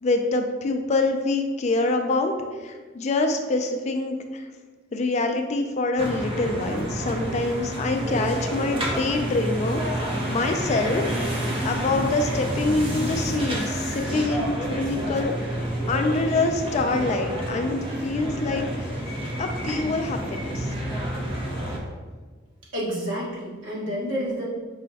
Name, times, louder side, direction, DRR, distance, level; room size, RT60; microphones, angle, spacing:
voice 1, 0.0-2.3 2.6-4.5 4.9-9.8 10.3-15.6 15.9-19.0 19.4-20.7, left 3 dB, 35° left, 5 dB, 0.3 m, -25 dB
sound 1, 6.0-21.8, right 1 dB, 25° right, 0.6 m, -29 dB
voice 2, 22.7-24.5, equal, 75° right, -6 dB, 1.4 m, -29 dB
5.4 x 2.1 x 4.0 m, 1.4 s
head